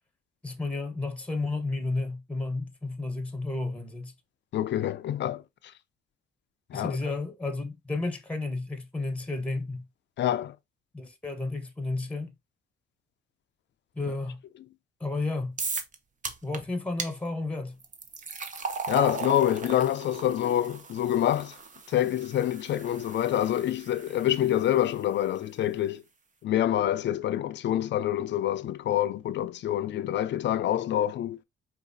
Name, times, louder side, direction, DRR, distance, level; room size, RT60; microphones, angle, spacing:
voice 1, 0.4-4.1 6.7-9.9 10.9-12.3 13.9-14.4 15.0-15.6 16.4-17.8, left 2 dB, 5° left, 1.1 m, -32 dB
voice 2, 4.5-5.4 6.7-7.0 10.2-10.6 18.9-21.5 21.9-26.0 26.4-31.4, left 11 dB, 65° left, 0.6 m, -26 dB
sound 1, 15.6-16.0 16.2-16.6 17.0-17.1 17.8-24.9, right 5 dB, 40° right, 1.0 m, -37 dB
4.9 x 2.7 x 4.0 m
cardioid pair, 90°, 20 cm